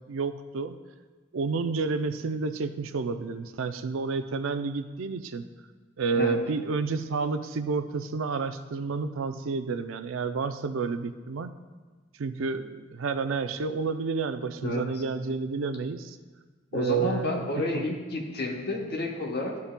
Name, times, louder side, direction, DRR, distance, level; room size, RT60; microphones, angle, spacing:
voice 1, 0.1-0.8 1.3-5.4 6.0-11.5 12.2-16.2 16.7-17.8, right 4 dB, 85° right, 10 dB, 0.4 m, -30 dB
voice 2, 16.7-19.6, left 2 dB, 55° left, 0 dB, 1.0 m, -30 dB
13.0 x 5.6 x 2.2 m, 1.4 s
head